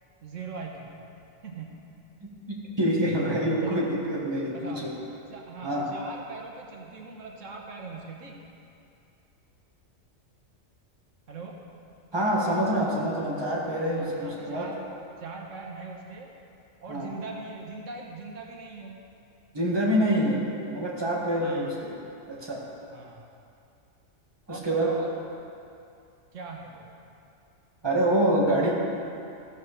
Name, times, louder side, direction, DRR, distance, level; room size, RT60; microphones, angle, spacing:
voice 1, 0.2-1.0 1.4-1.8 3.6-3.8 4.5-4.9 5.3-8.4 11.3-11.6 14.0-14.8 15.2-16.3 16.8-19.0 21.4-21.7 22.9-23.3 24.5-25.1 26.3-26.9, right 4 dB, 85° right, 0 dB, 1.5 m, -40 dB
voice 2, 2.2-4.9 5.6-5.9 12.1-14.7 16.9-17.1 19.5-22.0 22.3-22.6 24.5-24.9 27.8-28.7, right 1 dB, 20° right, -5 dB, 1.9 m, -26 dB
15.5 x 5.3 x 6.7 m, 2.6 s
omnidirectional pair, 1.3 m